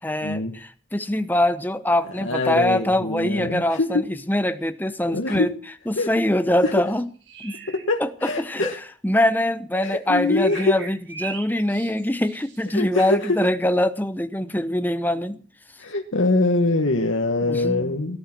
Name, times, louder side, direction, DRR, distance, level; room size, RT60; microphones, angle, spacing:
voice 1, 0.0-5.5 5.9-7.1 7.4-7.6 8.0-15.4 17.5-18.0, left 1 dB, 10° left, 0.9 m, -23 dB
voice 2, 2.2-4.0 5.1-5.5 6.0-6.1 6.6-6.7 7.7-8.8 9.7-10.7 12.7-13.4 15.8-18.2, left 2 dB, 85° left, 1.5 m, -23 dB
sound 1, 6.9-7.9 10.4-12.7, right 6 dB, 60° right, 3.5 m, -39 dB
18.0 x 11.5 x 6.1 m
head